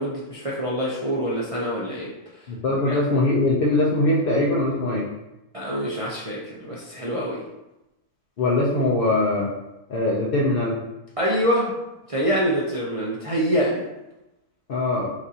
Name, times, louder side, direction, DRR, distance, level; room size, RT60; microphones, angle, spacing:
voice 1, 0.0-2.1 2.8-3.0 5.5-7.4 11.2-11.7 12.1-13.8, equal, 60° right, -6 dB, 0.3 m, -25 dB
voice 2, 2.5-5.1 8.4-9.5 9.9-10.8 14.7-15.1, left 2 dB, 60° left, -4 dB, 0.6 m, -22 dB
6.0 x 2.5 x 2.8 m, 0.96 s
omnidirectional pair, 1.6 m